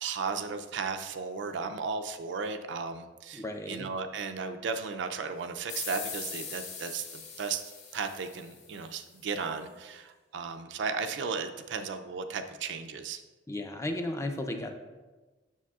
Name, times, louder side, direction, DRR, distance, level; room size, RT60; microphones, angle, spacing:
voice 1, 0.0-7.6 7.9-13.2, right 5 dB, 65° right, 7 dB, 0.4 m, -35 dB
voice 2, 3.3-3.9 13.5-14.7, left 1 dB, 15° left, 5 dB, 0.4 m, -34 dB
sound 1, 5.7-9.0, left 5 dB, 35° left, 0.9 m, -41 dB
7.3 x 6.2 x 2.3 m, 1.2 s
head